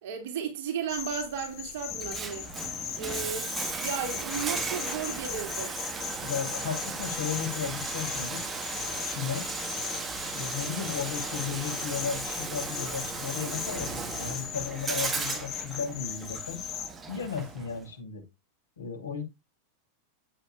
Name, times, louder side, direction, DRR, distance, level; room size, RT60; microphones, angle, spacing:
voice 1, 0.0-2.5 3.0-5.7, right 7 dB, 50° right, 2.9 m, -34 dB
sound 1, 0.9-16.9, left 10 dB, 35° left, 2.2 m, -38 dB
Bathtub (filling or washing), 1.9-17.8, right 4 dB, 15° right, 1.9 m, -36 dB
voice 2, 6.2-8.4 9.0-9.5 10.3-16.6 17.1-18.2 18.8-19.2, left 6 dB, 70° left, 6.6 m, -35 dB
13.0 x 8.9 x 2.6 m
figure-of-eight pair, 90°, 0 cm